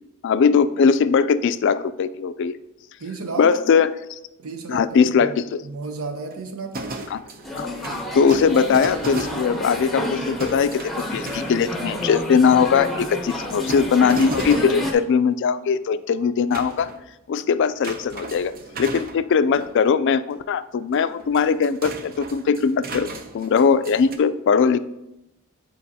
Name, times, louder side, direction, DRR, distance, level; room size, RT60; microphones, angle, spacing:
voice 1, 0.2-2.5 3.4-4.2 4.7-5.6 7.1-7.2 7.5-7.7 8.1-16.9 17.3-18.5 18.8-24.8, left 6 dB, 60° left, 0.3 m, -20 dB
voice 2, 3.0-3.7 4.4-5.4 5.6-7.0, right 4 dB, 85° right, 0.8 m, -33 dB
sound 1, 5.5-5.7 6.1-9.9 10.4-11.7 13.3-15.1 15.8-17.1 17.8-19.7 20.3-20.4 20.8-24.2, right 2 dB, 45° right, 0.6 m, -36 dB
sound 2, 7.4-14.9, left 1 dB, ahead, 0.9 m, -29 dB
9.9 x 4.6 x 2.8 m
head